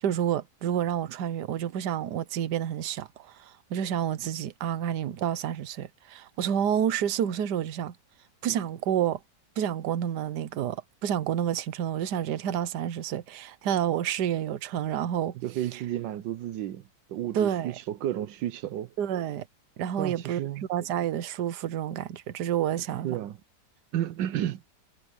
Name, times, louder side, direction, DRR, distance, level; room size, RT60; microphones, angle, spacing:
voice 1, 0.0-7.9 8.4-9.2 9.6-15.4 15.7-15.8 17.3-17.7 19.0-19.5 19.8-20.4 20.7-23.2, right 9 dB, 70° right, 1.5 m, -29 dB
voice 2, 15.4-18.9 20.0-20.7 23.0-23.4 23.9-24.6, right 12 dB, 90° right, 1.4 m, -32 dB
omnidirectional pair, 1.9 m